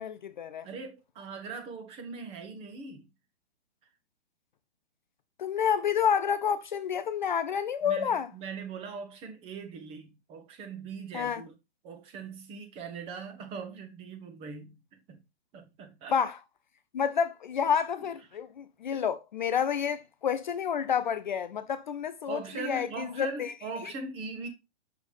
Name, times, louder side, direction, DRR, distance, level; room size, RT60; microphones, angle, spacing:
voice 1, 0.0-0.7 5.4-8.3 11.1-11.4 16.1-16.4 16.9-23.5, left 7 dB, 45° left, 0.4 m, -29 dB
voice 2, 0.6-3.1 7.8-11.5 11.8-15.2 15.5-16.2 22.3-24.5, right 4 dB, 15° right, 0.9 m, -40 dB
6.2 x 5.6 x 3.2 m
figure-of-eight pair, 125°, 34 cm